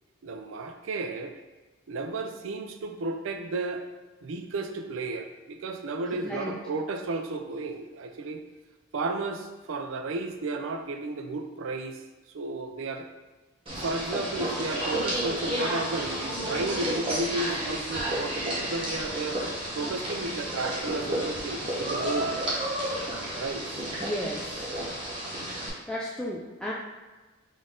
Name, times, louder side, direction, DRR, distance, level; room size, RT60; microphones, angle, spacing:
voice 1, 0.2-1.3 1.9-3.8 4.2-8.4 8.9-12.0 12.3-13.1 13.8-19.4 19.8-22.3 23.4-23.7, right 3 dB, 85° right, 6 dB, 0.4 m, -33 dB
voice 2, 6.1-6.6 24.0-24.7 25.9-26.7, equal, 5° left, -5 dB, 0.3 m, -34 dB
sound 1, 13.7-25.7, right 1 dB, 30° right, 1.0 m, -31 dB
3.8 x 2.6 x 3.6 m, 1.3 s
head